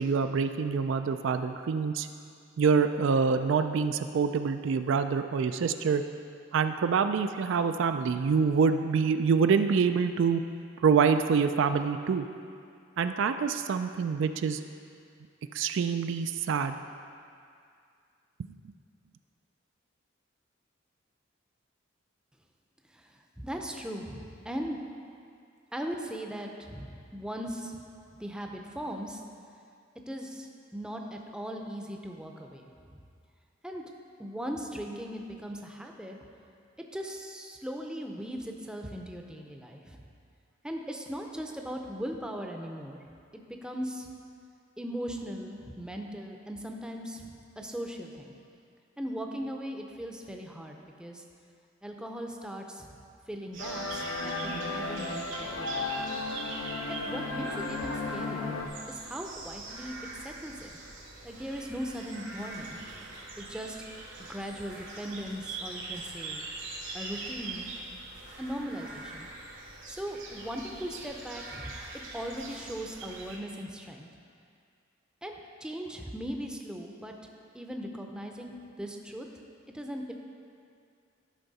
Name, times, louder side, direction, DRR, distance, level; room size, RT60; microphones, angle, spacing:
voice 1, 0.0-2.1 2.6-6.0 6.5-10.4 10.8-12.3 13.0-14.6 15.5-16.7, right 5 dB, 65° right, 8 dB, 0.3 m, -26 dB
voice 2, 22.9-24.8 25.7-27.8 28.2-29.2 30.1-33.0 33.6-33.8 34.2-36.2 36.9-40.0 40.6-43.0 43.3-44.1 44.8-48.3 49.0-51.2 51.8-53.0 53.3-56.1 56.9-58.6 58.9-59.9 60.2-60.7 61.2-62.8 63.4-63.8 64.3-66.4 66.9-67.7 68.4-69.3 69.8-71.7 72.1-74.1 75.2-77.1 77.5-79.3 79.7-80.1, equal, 5° right, 2 dB, 0.6 m, -39 dB
sound 1, 53.5-73.4, right 3 dB, 85° right, 2.4 m, -43 dB
sound 2, 53.6-58.7, left 3 dB, 90° left, 0.9 m, -34 dB
12.5 x 5.7 x 4.1 m, 2.3 s
head